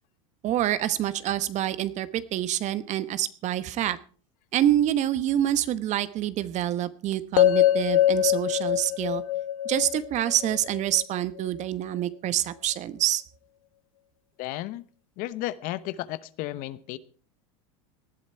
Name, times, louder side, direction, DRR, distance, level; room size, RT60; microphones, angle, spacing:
voice 1, 0.4-4.0 4.5-9.2 9.6-13.2, right 12 dB, 45° right, 15 dB, 1.1 m, -26 dB
sound 1, 7.4-11.5, left 13 dB, 80° left, 0.9 m, -24 dB
voice 2, 14.4-14.8 15.2-17.0, left 15 dB, 55° left, 16 dB, 1.0 m, -33 dB
19.0 x 12.0 x 4.5 m, 0.42 s
hypercardioid pair, 100°, 17 cm